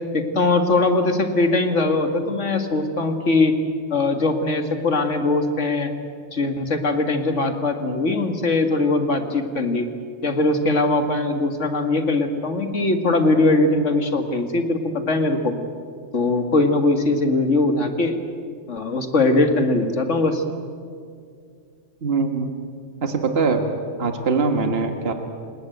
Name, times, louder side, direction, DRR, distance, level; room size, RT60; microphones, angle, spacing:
voice 1, 0.1-3.6 3.9-5.9 6.3-9.9 10.2-15.5 16.1-18.2 18.7-20.4, left 2 dB, 70° left, 6 dB, 2.4 m, -21 dB
voice 2, 22.0-22.5 23.0-23.7 24.0-25.1, right 4 dB, 50° right, 5 dB, 1.9 m, -22 dB
29.0 x 18.0 x 9.3 m, 2.2 s
omnidirectional pair, 1.3 m